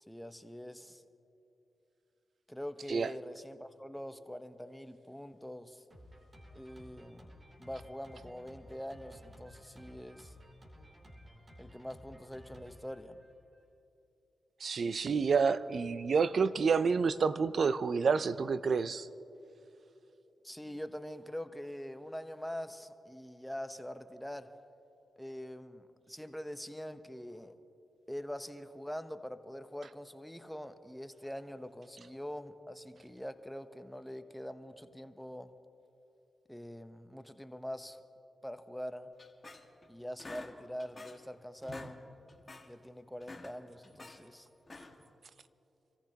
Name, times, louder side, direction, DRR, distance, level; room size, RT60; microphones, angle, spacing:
voice 1, 0.1-1.0 2.5-5.8 6.5-7.3 7.6-10.3 11.6-13.2 20.4-24.6 25.2-27.6 28.1-35.5 36.5-38.0 38.4-39.1 39.9-42.0 42.7-44.5, equal, 5° left, 0.9 m, -44 dB
Drum kit, 5.9-13.7, equal, 40° right, 3.1 m, -55 dB
voice 2, 14.6-19.1, right 5 dB, 65° right, 0.5 m, -29 dB
sound 1, 39.2-39.9 40.2-41.3 41.6-42.0 42.3-42.7 43.1-44.2 44.6-45.1, left 2 dB, 35° left, 1.8 m, -49 dB
26.5 x 14.5 x 2.9 m
supercardioid pair, 40°, 0 cm